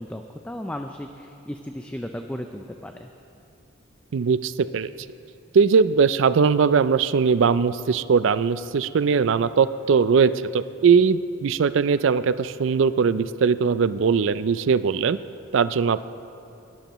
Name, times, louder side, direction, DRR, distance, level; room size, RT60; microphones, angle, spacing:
voice 1, 0.0-3.1, left 1 dB, 5° left, 5 dB, 0.4 m, -35 dB
voice 2, 4.1-4.9 5.5-15.2 15.5-16.1, right 5 dB, 65° right, 14 dB, 0.4 m, -20 dB
20.5 x 12.5 x 3.0 m, 2.8 s
head